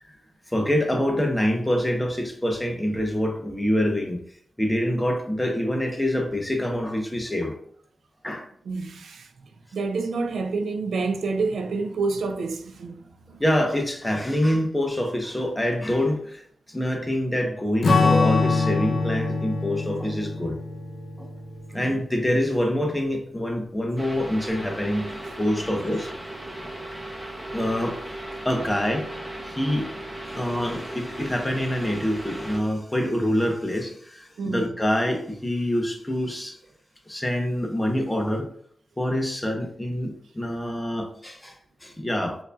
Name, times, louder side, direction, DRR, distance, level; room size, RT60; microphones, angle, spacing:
voice 1, 0.5-4.2 4.6-7.5 8.2-8.5 13.4-16.4 16.7-20.6 21.2-21.3 21.7-26.1 27.5-28.0 28.4-29.1 29.4-29.9 30.3-36.6 37.1-38.5 39.0-41.6 41.8-42.4, left 1 dB, 10° left, 0.8 m, -26 dB
voice 2, 8.7-9.3 9.7-13.4 21.7-21.9 34.4-34.6, right 4 dB, 85° right, 0.4 m, -28 dB
Strum, 17.8-22.5, left 3 dB, 80° left, 0.5 m, -24 dB
sound 1, 24.0-32.6, right 1 dB, 15° right, 1.0 m, -36 dB
4.5 x 2.6 x 2.3 m
cardioid pair, 60°, 0 cm